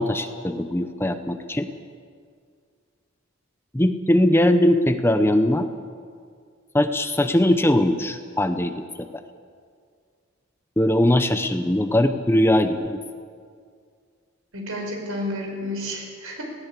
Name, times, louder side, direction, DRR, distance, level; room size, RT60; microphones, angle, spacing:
voice 1, 0.0-1.7 3.7-5.7 6.7-9.1 10.8-13.0, left 1 dB, 10° left, 9 dB, 0.7 m, -20 dB
voice 2, 14.5-16.4, left 1 dB, 80° right, 2 dB, 5.3 m, -31 dB
19.5 x 17.0 x 8.4 m, 2.1 s
head